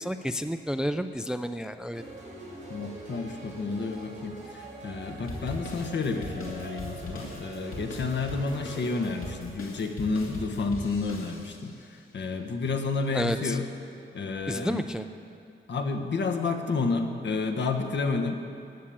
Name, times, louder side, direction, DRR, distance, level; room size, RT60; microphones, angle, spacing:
voice 1, 0.0-2.0 13.1-13.6 14.5-15.0, equal, 5° right, 10 dB, 0.4 m, -30 dB
sound 1, 1.9-9.3, right 1 dB, 35° right, 4.6 m, -43 dB
voice 2, 2.7-13.6 14.1-14.9 15.7-18.4, left 4 dB, 60° left, 4 dB, 1.3 m, -30 dB
sound 2, 5.3-11.8, left 1 dB, 80° left, 2.7 m, -41 dB
15.0 x 9.6 x 8.7 m, 2.5 s
wide cardioid pair, 140°, 21 cm